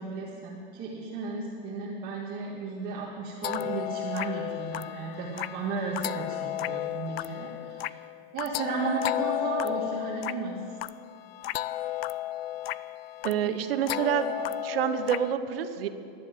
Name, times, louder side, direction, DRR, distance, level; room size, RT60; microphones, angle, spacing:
voice 1, 0.0-8.0 8.3-10.6 13.5-13.6, right 4 dB, 30° right, -3 dB, 1.8 m, -34 dB
sound 1, 3.4-15.3, left 15 dB, 85° left, 0.5 m, -34 dB
voice 2, 13.2-14.3 14.6-15.9, right 10 dB, 75° right, 10 dB, 1.1 m, -27 dB
15.0 x 11.0 x 7.6 m, 2.6 s
supercardioid pair, 150°, 30 cm